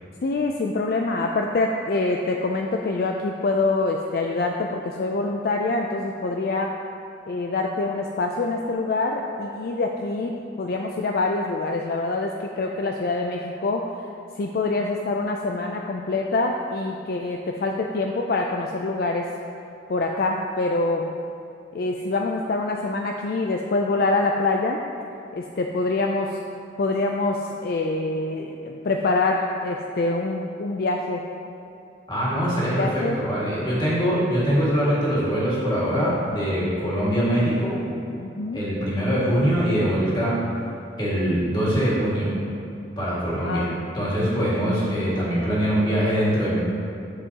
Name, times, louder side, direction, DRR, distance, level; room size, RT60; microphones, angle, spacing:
voice 1, 0.2-6.7 7.3-13.9 14.4-19.3 19.9-21.1 21.7-24.8 25.3-26.4 26.8-31.2 32.7-33.2 38.2-38.6 43.4-43.8, left 3 dB, 50° left, 2 dB, 0.3 m, -25 dB
voice 2, 32.1-37.8 38.5-40.4 41.0-42.3 43.0-46.6, equal, 25° left, -8 dB, 1.9 m, -23 dB
9.9 x 6.6 x 2.9 m, 2.5 s
head